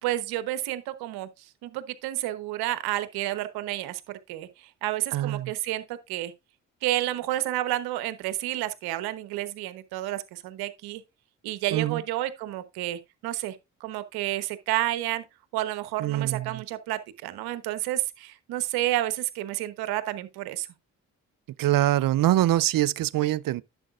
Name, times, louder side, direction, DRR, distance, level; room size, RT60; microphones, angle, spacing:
voice 1, 0.0-1.3 1.6-4.0 4.3-4.5 4.8-6.3 6.8-11.0 11.4-15.2 15.5-20.7, right 15 dB, 85° right, 1.1 m, -30 dB
voice 2, 5.1-5.5 11.7-12.0 16.0-16.6 21.6-23.6, right 14 dB, 65° right, 0.6 m, -24 dB
11.0 x 7.7 x 2.4 m
hypercardioid pair, 45°, 37 cm